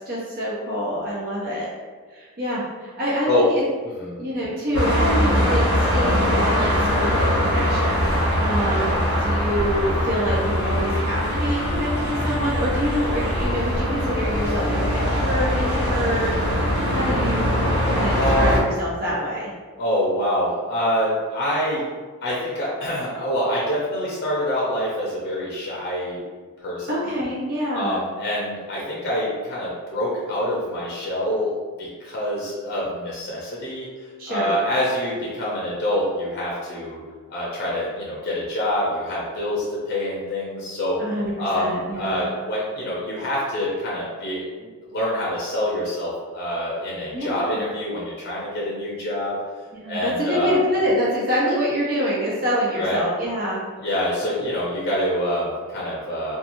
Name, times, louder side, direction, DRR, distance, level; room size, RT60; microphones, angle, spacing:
voice 1, 0.1-1.7 2.1-3.6 4.2-16.3 16.9-17.6 17.9-19.5 26.9-28.0 34.2-34.5 41.0-42.2 47.1-47.6 49.7-53.6, equal, 40° right, -6 dB, 0.5 m, -26 dB
sound 1, 4.7-18.6, equal, 70° right, 1.1 m, -22 dB
voice 2, 18.1-18.5 19.8-21.8 22.2-26.2 26.6-27.0 27.7-31.5 31.8-33.9 34.3-37.0 37.3-41.0 41.4-49.3 49.9-50.5 52.8-53.0 53.8-56.4, left 1 dB, 45° left, -5 dB, 0.6 m, -26 dB
2.8 x 2.3 x 2.6 m, 1.5 s
head